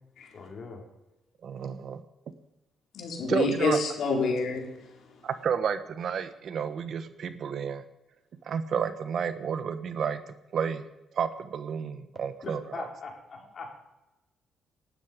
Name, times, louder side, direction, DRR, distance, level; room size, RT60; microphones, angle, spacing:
voice 1, 0.3-0.8 12.4-13.7, left 3 dB, 50° left, 1 dB, 4.5 m, -40 dB
voice 2, 1.4-2.0 3.3-3.8 5.2-7.8 8.4-10.8 11.2-12.9, right 7 dB, 60° right, 11 dB, 1.3 m, -31 dB
voice 3, 2.9-4.6, left 3 dB, 70° left, 1 dB, 4.0 m, -27 dB
18.5 x 12.0 x 5.2 m, 0.96 s
cardioid pair, 90°, 0 cm